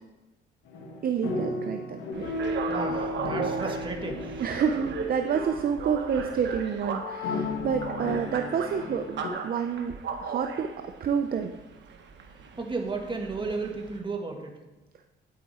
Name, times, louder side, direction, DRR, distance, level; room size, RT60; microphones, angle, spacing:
sound 1, 0.7-5.8 6.8-9.3, left 2 dB, 80° left, 1.6 m, -34 dB
voice 1, 1.0-2.3 4.4-10.0 10.2-11.5, right 7 dB, 50° right, 6 dB, 0.6 m, -29 dB
sound 2, 2.1-14.0, right 6 dB, 65° right, 1.3 m, -37 dB
voice 2, 2.7-4.4 12.3-14.6, right 3 dB, 25° right, 2 dB, 1.8 m, -34 dB
9.3 x 8.4 x 4.3 m, 1.1 s
cardioid pair, 90°, 20 cm